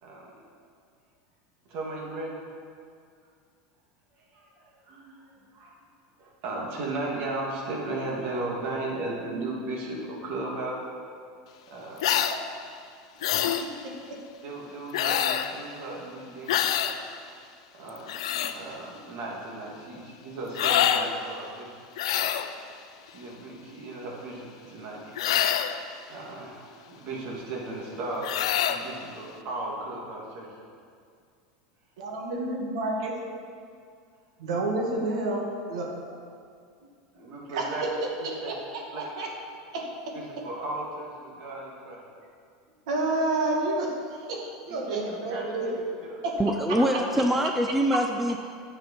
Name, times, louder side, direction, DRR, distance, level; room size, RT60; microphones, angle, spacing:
voice 1, 0.0-0.3 1.6-2.4 4.2-5.8 6.2-10.8 11.7-12.1 14.4-17.2 17.7-21.8 23.1-25.2 26.1-30.5 37.1-37.8 38.2-38.5 38.9-39.0 40.1-42.0 44.7-45.7 46.1-46.2 46.9-47.4, right 2 dB, 55° right, -3 dB, 2.7 m, -36 dB
sound 1, 12.0-12.4 13.2-13.7 14.9-15.5 16.5-17.0 17.9-18.5 20.5-21.1 22.0-22.5 25.2-25.8 28.2-28.8, left 10 dB, 80° left, 0.6 m, -25 dB
voice 2, 13.4-14.2 32.0-33.2 34.4-35.4 35.7-35.9 37.5-37.7 38.2-39.3 39.7-40.2 42.9-43.9 44.3-45.7 46.2-46.3, right 2 dB, 80° right, 0 dB, 2.0 m, -30 dB
voice 3, 46.4-48.4, equal, 5° right, 4 dB, 0.5 m, -24 dB
9.6 x 7.4 x 5.8 m, 2.2 s
supercardioid pair, 130°, 3 cm